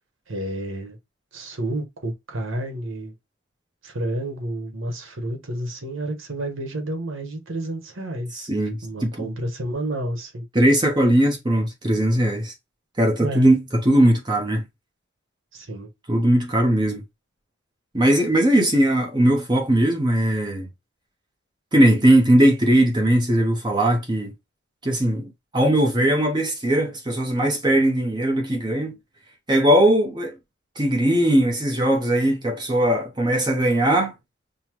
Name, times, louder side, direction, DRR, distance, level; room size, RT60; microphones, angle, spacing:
voice 1, 0.3-1.0 1.3-3.1 3.8-8.5 8.8-10.4 13.2-13.5 15.5-15.9, right 1 dB, 75° right, 1.1 m, -30 dB
voice 2, 8.3-9.3 10.5-12.5 13.0-14.6 16.1-17.0 17.9-20.7 21.7-24.3 24.8-29.0 29.5-30.4 30.8-34.1, right 1 dB, 20° right, 0.7 m, -19 dB
5.4 x 2.1 x 3.0 m
head